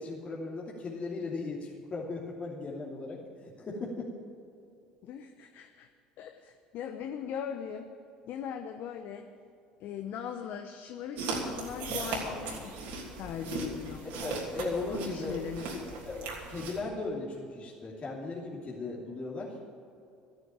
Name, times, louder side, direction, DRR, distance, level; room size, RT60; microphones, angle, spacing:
voice 1, 0.0-4.1 14.2-19.6, left 3 dB, 35° left, -4 dB, 2.9 m, -37 dB
voice 2, 5.0-5.9 6.2-7.9 8.3-9.3 9.8-12.7 13.2-14.0 14.9-15.6, left 8 dB, 55° left, 6 dB, 0.9 m, -39 dB
sound 1, 11.2-16.8, right 3 dB, 65° right, 3.1 m, -38 dB
13.5 x 9.2 x 8.8 m, 2.6 s
hypercardioid pair, 65°, 4 cm